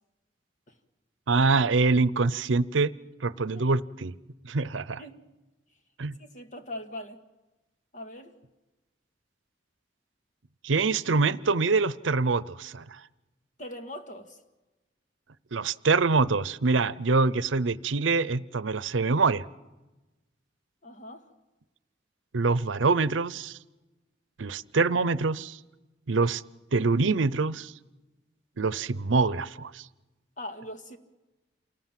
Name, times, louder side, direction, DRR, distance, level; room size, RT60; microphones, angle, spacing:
voice 1, 1.3-2.9 3.2-4.1 4.4-5.0 6.0-6.1 10.6-13.0 15.5-19.4 22.3-23.6 24.4-25.6 26.1-26.4 26.7-27.7 28.6-29.9, right 4 dB, 85° right, 0.7 m, -25 dB
voice 2, 6.2-7.2 7.9-8.3 13.6-14.4 20.8-21.3 30.4-31.0, left 1 dB, 40° left, 2.0 m, -41 dB
28.5 x 19.0 x 7.6 m
head